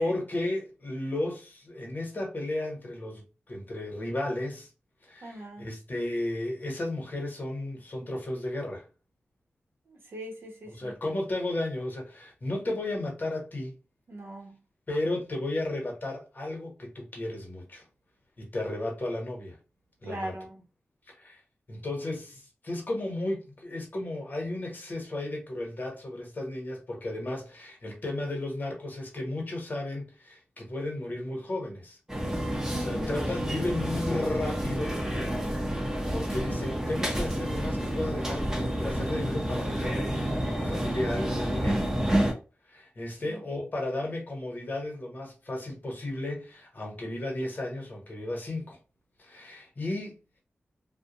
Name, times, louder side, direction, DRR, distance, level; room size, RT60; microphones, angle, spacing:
voice 1, 0.0-4.7 5.0-8.8 10.7-13.7 14.9-17.9 18.4-19.6 20.0-20.3 21.1-21.4 21.7-32.0 32.7-35.0 36.1-41.9 42.7-48.8 49.2-50.4, left 1 dB, 45° left, 1.0 m, -34 dB
voice 2, 5.2-5.7 9.9-11.0 14.1-14.6 20.0-20.6 32.7-33.1 43.2-43.4, right 1 dB, 70° right, 0.8 m, -41 dB
sound 1, 32.1-42.3, equal, 15° right, 0.7 m, -29 dB
2.3 x 2.1 x 2.8 m
wide cardioid pair, 70°, 4 cm